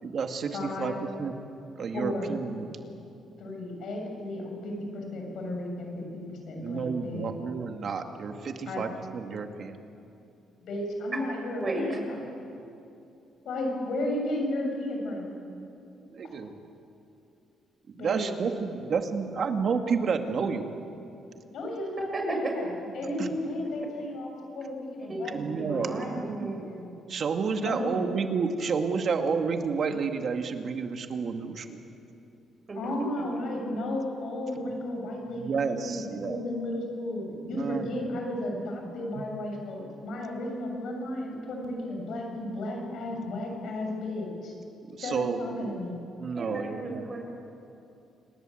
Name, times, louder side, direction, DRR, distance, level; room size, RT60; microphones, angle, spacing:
voice 1, 0.0-1.3 1.8-2.8 6.6-9.8 15.5-15.7 16.1-16.6 17.9-20.7 23.0-23.3 25.2-31.8 34.5-36.4 37.3-38.2 39.1-39.2 42.3-42.5 43.0-43.4 44.9-45.8 46.1-47.2, right 5 dB, 55° right, 5 dB, 2.2 m, -31 dB
voice 2, 0.5-1.0 1.9-2.4 3.4-6.0 6.3-7.3 8.7-8.8 10.6-12.4 13.4-15.3 18.0-18.3 21.5-22.7 23.0-24.3 24.5-26.2 26.7-26.9 27.6-28.1 32.8-35.5 35.8-44.5 45.0-46.0, left 1 dB, 70° left, 1 dB, 7.1 m, -34 dB
voice 3, 11.6-12.0 22.1-22.5 25.1-26.7 32.7-32.8 33.3-33.6 46.3-47.2, right 2 dB, 35° right, 2 dB, 6.8 m, -34 dB
27.5 x 20.0 x 7.9 m, 2.7 s
cardioid pair, 90°, 0 cm